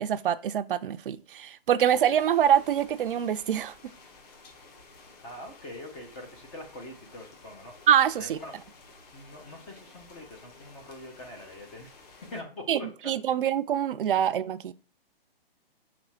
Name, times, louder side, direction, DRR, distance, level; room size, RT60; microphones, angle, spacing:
voice 1, 0.0-3.7 7.9-8.4 12.7-12.8 13.1-14.7, right 9 dB, 65° right, 0.5 m, -25 dB
sound 1, 1.9-12.4, left 3 dB, 40° left, 1.4 m, -53 dB
voice 2, 5.2-7.7 8.2-8.5 9.1-12.0 12.3-13.1, left 1 dB, 10° left, 0.4 m, -43 dB
6.0 x 3.2 x 5.6 m
hypercardioid pair, 155°, 30 cm